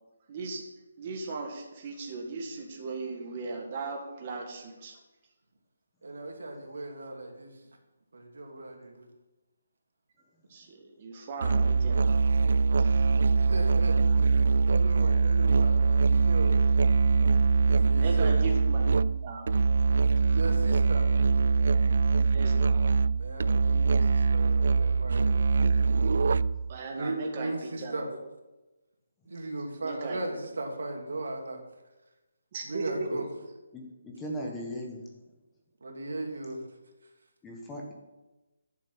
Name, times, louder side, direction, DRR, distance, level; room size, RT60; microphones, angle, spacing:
voice 1, 0.3-0.6 1.0-5.0 10.5-12.2 12.8-13.1 18.0-18.9 19.2-19.5 22.3-22.8 26.7-28.2 29.8-30.2 32.5-33.5, right 3 dB, 30° right, 1 dB, 1.8 m, -37 dB
voice 2, 6.0-7.5 8.1-9.1 13.2-14.0 14.7-16.5 17.7-18.3 20.3-21.1 23.2-25.3 26.9-28.1 29.3-31.6 32.7-33.3 35.8-36.6, right 2 dB, 80° right, 2 dB, 2.8 m, -37 dB
Musical instrument, 11.4-26.7, right 4 dB, 55° right, 0.3 m, -23 dB
voice 3, 33.7-35.1 37.4-37.9, equal, 10° left, -1 dB, 1.2 m, -38 dB
12.0 x 7.3 x 6.1 m, 1.1 s
hypercardioid pair, 175°, 0 cm